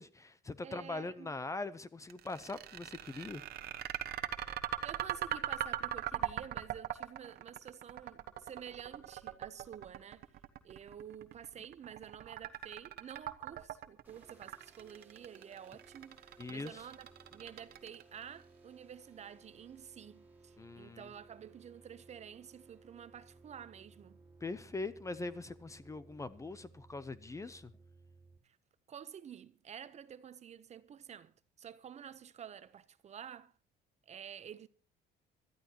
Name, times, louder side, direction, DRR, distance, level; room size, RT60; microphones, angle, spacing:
voice 1, 0.0-3.4 16.4-16.8 20.6-21.1 24.4-27.7, left 3 dB, 15° left, 0.7 m, -42 dB
voice 2, 0.6-1.4 4.8-10.3 10.6-24.2 28.4-28.6 28.9-33.5 34.1-34.7, right 8 dB, 35° right, 0.9 m, -50 dB
sound 1, 2.1-18.2, right 11 dB, 60° right, 1.2 m, -40 dB
sound 2, 14.0-28.4, right 3 dB, 10° right, 3.5 m, -61 dB
25.5 x 13.0 x 2.9 m
cardioid pair, 135°, 18 cm